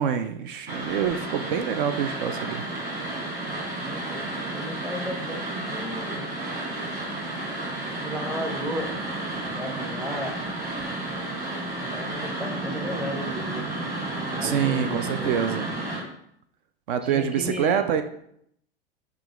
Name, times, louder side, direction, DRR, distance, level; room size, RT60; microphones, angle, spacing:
voice 1, 0.0-2.7 14.4-15.7 16.9-18.0, right 8 dB, 60° right, 9 dB, 0.4 m, -26 dB
sound 1, 0.7-16.0, right 2 dB, 30° right, 1.5 m, -32 dB
voice 2, 3.8-4.2 4.5-6.4 8.0-8.9 9.4-10.4 11.8-13.6 14.3-15.3 17.1-17.9, equal, 5° right, 3 dB, 0.5 m, -34 dB
5.6 x 2.4 x 2.9 m, 0.71 s
hypercardioid pair, 90°, 30 cm